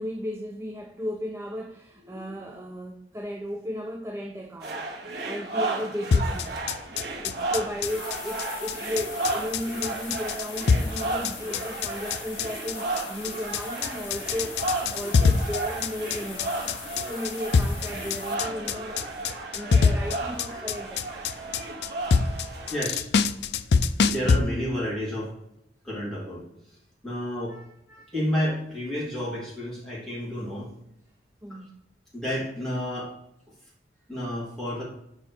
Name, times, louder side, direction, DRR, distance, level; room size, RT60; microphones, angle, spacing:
voice 1, 0.0-4.8 5.2-6.7 7.2-16.7 17.0-21.3 31.4-31.8, equal, 15° right, 3 dB, 0.6 m, -35 dB
sound 1, 4.6-22.8, right 2 dB, 60° right, 1.5 m, -34 dB
sound 2, 6.1-24.4, left 5 dB, 60° left, 0.4 m, -24 dB
sound 3, 7.8-18.3, left 8 dB, 85° left, 1.2 m, -42 dB
voice 2, 22.7-23.1 24.0-25.3 25.8-26.4 27.0-27.6 27.9-30.7 31.5-31.6 32.1-33.1 34.1-34.8, equal, ahead, -8 dB, 3.5 m, -31 dB
8.0 x 4.9 x 4.9 m, 0.80 s
head